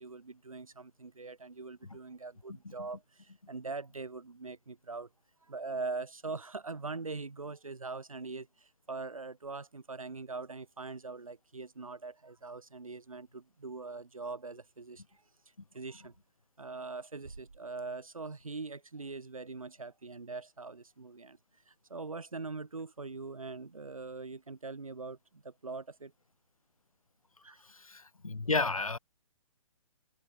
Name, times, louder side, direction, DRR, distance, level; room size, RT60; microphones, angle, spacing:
voice 1, 0.0-5.1 5.4-16.1 16.6-26.1 27.4-27.6, right 3 dB, 75° right, 2.8 m, -42 dB
voice 2, 27.7-29.0, left 3 dB, 80° left, 2.4 m, -32 dB
figure-of-eight pair, 130°, 18 cm